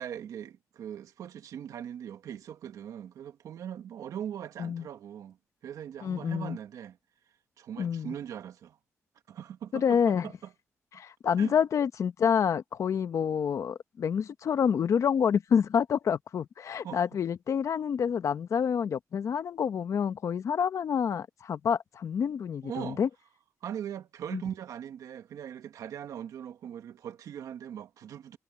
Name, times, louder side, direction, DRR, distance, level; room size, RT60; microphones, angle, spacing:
voice 1, 0.0-5.4 5.6-7.0 7.6-8.8 9.3-10.5 11.4-11.5 16.8-17.0 22.6-23.0 23.6-28.4, right 9 dB, 85° right, 1.8 m, -40 dB
voice 2, 6.0-6.6 7.8-8.1 9.7-10.3 10.9-23.1 24.3-24.4, left 7 dB, 65° left, 1.2 m, -28 dB
cardioid pair, 100°, 6 cm